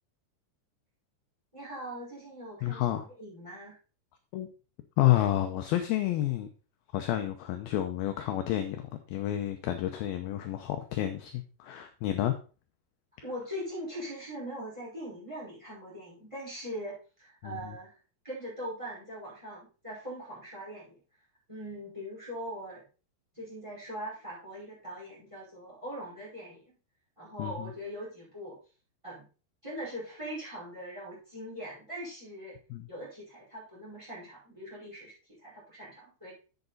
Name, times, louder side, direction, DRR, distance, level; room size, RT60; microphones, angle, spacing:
voice 1, 1.5-3.8 13.2-17.9 18.2-21.0 21.5-22.8 23.3-26.8 27.2-28.5 29.0-29.2 29.6-32.6 32.9-35.1 35.4-36.3, equal, 5° right, -5 dB, 4.6 m, -41 dB
voice 2, 2.6-3.1 4.3-4.5 5.0-6.5 6.9-12.4 17.4-17.8 27.4-27.7 32.7-32.9, left 13 dB, 80° left, 7 dB, 2.3 m, -30 dB
8.0 x 7.9 x 4.0 m, 0.35 s
omnidirectional pair, 4.8 m